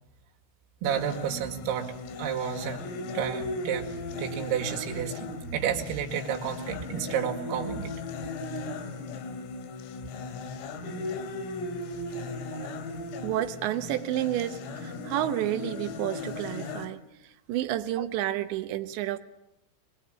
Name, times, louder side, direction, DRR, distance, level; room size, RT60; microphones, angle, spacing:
voice 1, 0.8-2.9 3.1-3.9 4.2-7.9 12.5-12.7 18.0-18.1, right 9 dB, 90° right, 3 dB, 4.8 m, -31 dB
sound 1, 0.9-16.9, left 2 dB, 85° left, 4.9 m, -37 dB
voice 2, 13.2-17.0 17.5-19.2, right 13 dB, 70° right, 9 dB, 3.1 m, -30 dB
23.5 x 23.5 x 8.9 m, 0.85 s
omnidirectional pair, 5.9 m